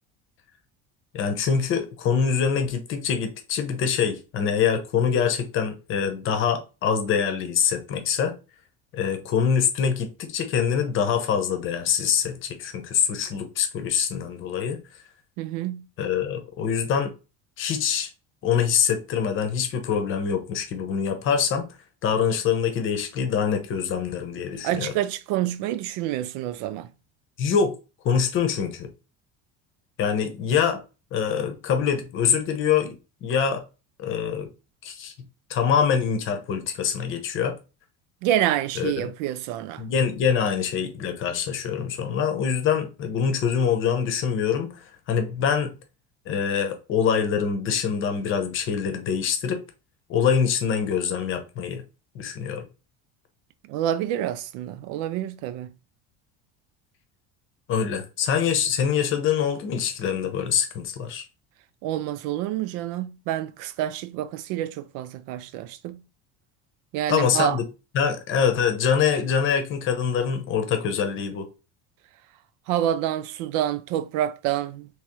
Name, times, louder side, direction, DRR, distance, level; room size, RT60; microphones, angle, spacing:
voice 1, 1.1-8.3 8.9-14.8 16.0-17.1 17.6-18.1 18.4-21.7 22.0-24.9 27.4-27.7 28.0-28.9 30.0-30.8 31.1-33.6 34.0-34.5 34.8-35.1 35.5-37.6 38.8-38.9 39.8-45.8 46.3-49.6 50.1-51.8 52.1-52.7 57.7-61.2 67.1-67.6 67.9-71.5, left 7 dB, 40° left, 0.8 m, -24 dB
voice 2, 15.4-15.8 24.6-26.9 38.2-39.8 53.7-55.7 61.8-66.0 66.9-67.6 72.7-74.9, right 12 dB, 70° right, 0.5 m, -27 dB
3.5 x 3.1 x 3.0 m
cardioid pair, 165°, 32 cm